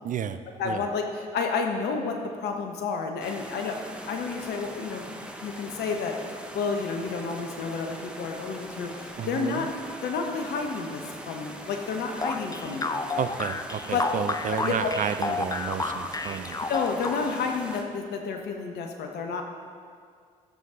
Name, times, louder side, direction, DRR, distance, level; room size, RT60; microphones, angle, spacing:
voice 1, 0.0-0.4 0.6-0.8 9.2-9.7 13.2-16.6, right 8 dB, 45° right, 10 dB, 0.6 m, -31 dB
voice 2, 0.6-3.8 4.1-5.1 5.4-9.7 10.0-12.9 13.9-14.0 14.5-14.9 16.7-19.4, left 5 dB, 65° left, 3 dB, 1.2 m, -30 dB
sound 1, 3.2-17.8, right 1 dB, 5° right, 1.2 m, -41 dB
sound 2, 12.2-17.5, left 3 dB, 20° left, 0.7 m, -31 dB
13.5 x 7.3 x 3.9 m, 2.1 s
figure-of-eight pair, 45°, 19 cm